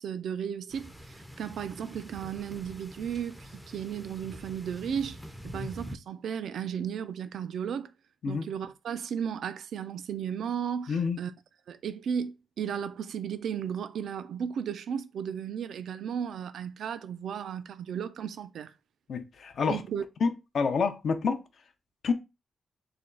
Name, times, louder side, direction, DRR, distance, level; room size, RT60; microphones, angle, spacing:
voice 1, 0.0-5.2 5.4-7.9 8.3-11.3 11.7-18.7 19.7-20.0, right 8 dB, 75° right, 0.3 m, -35 dB
sound 1, 0.7-6.0, equal, ahead, 0.4 m, -45 dB
voice 2, 10.9-11.2 19.1-19.8 20.2-21.4 22.0-22.1, left 5 dB, 60° left, 0.5 m, -28 dB
3.3 x 2.3 x 3.7 m
wide cardioid pair, 140°, 0 cm